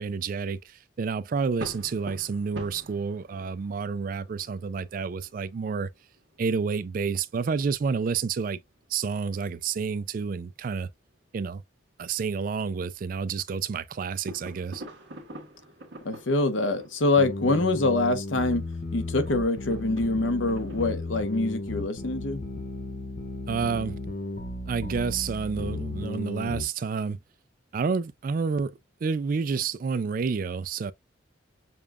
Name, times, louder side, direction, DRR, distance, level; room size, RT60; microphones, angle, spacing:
voice 1, 0.0-5.9 6.4-8.6 8.9-10.9 11.3-11.6 12.0-14.8 23.5-24.0 24.7-27.2 27.7-30.9, right 5 dB, 45° right, 0.3 m, -29 dB
sound 1, 1.6-10.6 10.8-10.9 11.3-11.4 12.2-13.2 13.5-20.9, right 1 dB, 75° right, 1.3 m, -47 dB
voice 2, 16.0-18.6 18.9-22.4, left 2 dB, 85° left, 0.9 m, -25 dB
sound 2, 17.2-26.7, left 2 dB, 45° left, 1.0 m, -35 dB
6.8 x 2.3 x 2.2 m
head